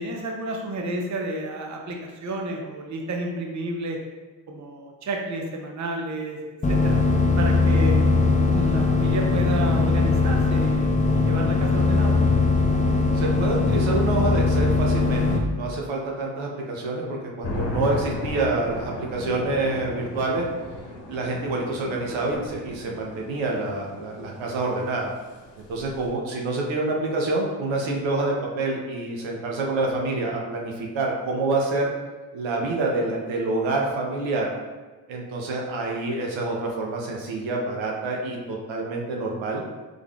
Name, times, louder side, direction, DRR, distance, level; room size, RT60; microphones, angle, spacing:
voice 1, 0.0-4.0 4.5-6.4 6.7-7.0 7.4-8.0 8.5-12.2, right 2 dB, 40° right, 1 dB, 0.7 m, -31 dB
sound 1, 6.6-15.4, left 3 dB, 15° left, 0.5 m, -20 dB
voice 2, 13.1-20.5 21.1-25.1 25.6-31.9 32.3-34.5 35.1-39.6, right 2 dB, 75° right, -1 dB, 0.8 m, -27 dB
sound 2, 17.4-26.1, left 2 dB, 60° left, 0.9 m, -35 dB
3.6 x 3.5 x 2.3 m, 1.3 s
supercardioid pair, 55°, 47 cm